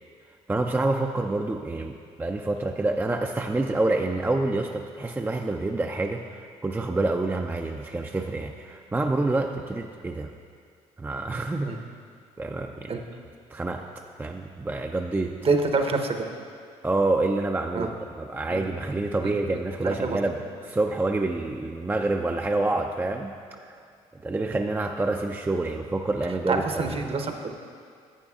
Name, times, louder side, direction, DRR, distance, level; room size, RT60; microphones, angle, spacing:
voice 1, 0.5-10.3 11.0-11.7 12.4-12.9 13.5-13.9 14.2-15.4 16.8-20.4 20.7-23.3 23.6-23.8 24.2-26.8, right 2 dB, 15° right, 3 dB, 0.4 m, -27 dB
voice 2, 15.4-16.3 17.7-17.9 18.5-18.6 19.2-20.2 26.2-27.5, right 3 dB, 40° right, 5 dB, 0.8 m, -27 dB
11.5 x 7.9 x 2.4 m, 2.2 s
hypercardioid pair, 55°, 15 cm